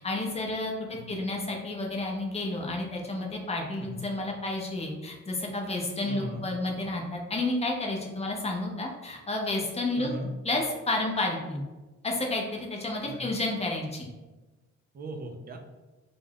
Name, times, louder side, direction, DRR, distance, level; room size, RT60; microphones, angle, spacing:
voice 1, 0.0-10.1 10.4-11.6 12.0-14.1, left 2 dB, 20° left, 0 dB, 0.6 m, -31 dB
voice 2, 6.1-6.5 10.0-10.3 13.0-13.2 14.9-15.6, right 1 dB, 30° right, 4 dB, 0.4 m, -38 dB
2.3 x 2.0 x 3.3 m, 1.2 s
cardioid pair, 90°, 30 cm